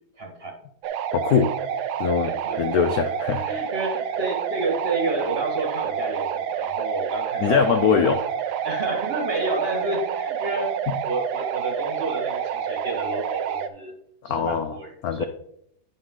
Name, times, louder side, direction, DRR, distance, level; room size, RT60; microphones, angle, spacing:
voice 1, 0.2-0.5 2.2-2.6 3.4-8.1 8.6-10.8 11.0-13.9 14.2-15.2, right 2 dB, 30° right, 1 dB, 1.7 m, -30 dB
sound 1, 0.8-13.7, right 8 dB, 70° right, 1.0 m, -28 dB
voice 2, 1.1-1.5 2.0-3.4 7.4-8.3 14.2-14.7 15.0-15.2, left 7 dB, 80° left, 9 dB, 0.8 m, -22 dB
10.5 x 5.5 x 3.7 m, 0.71 s
omnidirectional pair, 2.2 m